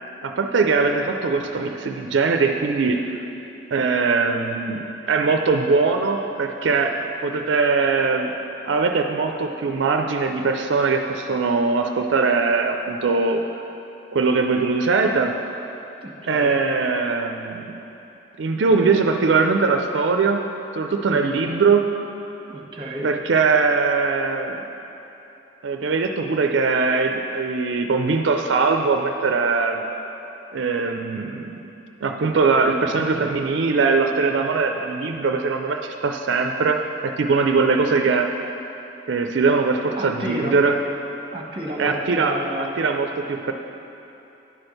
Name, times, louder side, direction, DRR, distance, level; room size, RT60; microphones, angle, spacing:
voice 1, 0.2-3.2 3.7-8.3 8.7-13.4 14.1-15.4 16.3-17.8 18.4-20.4 20.7-21.9 23.0-24.6 25.6-29.8 30.5-31.6 32.0-38.3 39.1-40.8 41.8-43.5, right 4 dB, 80° right, 4 dB, 0.4 m, -21 dB
voice 2, 16.0-16.5 21.1-21.6 22.5-23.1 40.0-40.6 41.3-42.8, equal, 25° right, -2 dB, 1.2 m, -32 dB
10.0 x 4.4 x 6.5 m, 3.0 s
head